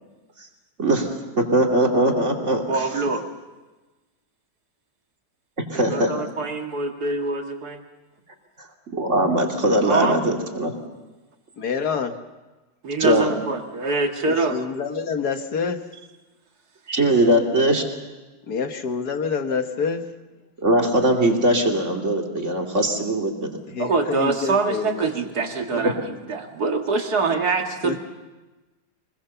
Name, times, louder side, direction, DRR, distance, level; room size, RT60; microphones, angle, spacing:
voice 1, 1.4-2.6 5.7-6.1 8.9-10.7 13.0-13.3 16.9-17.8 20.6-23.5 25.7-25.9, right 1 dB, 40° right, 1 dB, 2.9 m, -20 dB
voice 2, 2.7-3.2 5.7-7.8 9.8-10.2 12.8-14.6 23.8-28.0, right 3 dB, 55° right, 3 dB, 2.5 m, -24 dB
voice 3, 11.6-12.1 14.3-15.8 18.5-20.0 23.7-25.1 25.4-25.9 27.8-28.0, left 5 dB, 60° left, 7 dB, 1.8 m, -27 dB
24.5 x 21.5 x 7.0 m, 1.2 s
omnidirectional pair, 2.0 m